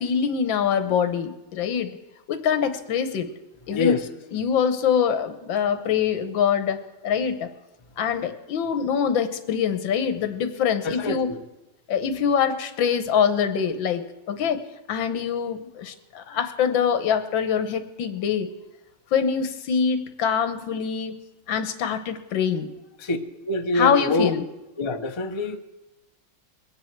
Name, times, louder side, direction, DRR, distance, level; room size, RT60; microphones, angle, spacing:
voice 1, 0.0-1.9 2.3-3.3 3.7-4.0 4.3-7.5 8.0-11.3 11.9-14.6 14.9-18.5 19.1-21.2 21.5-22.7 23.7-24.4, left 7 dB, 80° left, 1.7 m, -24 dB
voice 2, 3.7-4.0 10.8-11.4 23.0-23.2 23.5-24.3 24.8-25.6, left 2 dB, 45° left, 0.3 m, -25 dB
22.5 x 9.6 x 4.6 m
omnidirectional pair, 2.1 m